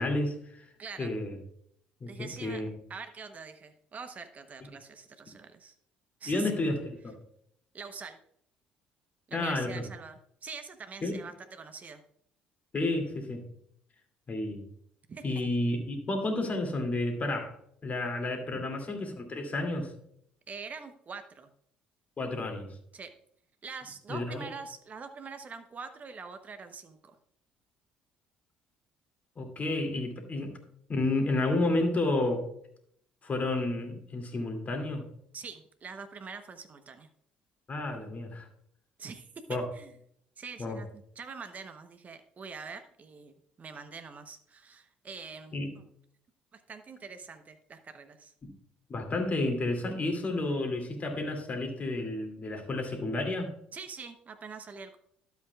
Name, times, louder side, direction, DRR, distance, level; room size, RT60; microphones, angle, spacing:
voice 1, 0.0-0.6 1.0-1.4 2.0-2.7 6.3-7.2 9.3-9.8 11.0-11.2 12.7-13.4 14.3-14.6 15.2-17.5 17.8-19.9 22.2-22.7 24.1-24.5 29.4-30.5 30.9-32.5 33.2-35.0 37.7-38.5 39.5-39.6 40.6-40.8 45.5-45.7 48.4-48.5 48.9-53.5, left 2 dB, 35° left, 4 dB, 2.5 m, -31 dB
voice 2, 0.8-1.1 2.1-2.6 2.9-5.7 6.2-6.5 7.7-8.2 9.3-12.0 15.1-15.2 18.5-18.6 20.5-21.5 22.9-23.1 23.6-27.2 35.3-37.1 39.0-39.9 40.4-45.5 46.5-48.3 53.7-55.0, right 5 dB, 35° right, 9 dB, 0.9 m, -44 dB
12.5 x 8.0 x 2.3 m, 0.69 s
figure-of-eight pair, 50°, 4 cm